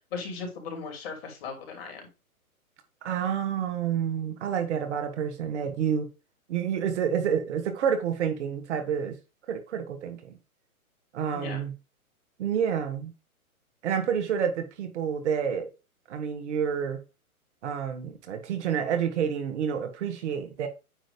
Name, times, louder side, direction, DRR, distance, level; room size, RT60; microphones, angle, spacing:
voice 1, 0.1-2.1 11.3-11.6, left 4 dB, 45° left, 2.8 m, -37 dB
voice 2, 3.0-6.1 6.5-9.2 9.5-10.3 11.1-11.7 12.4-13.1 13.8-15.7 16.1-17.0 17.6-20.7, right 8 dB, 50° right, 1.6 m, -29 dB
9.1 x 3.1 x 5.1 m
hypercardioid pair, 140°, 43 cm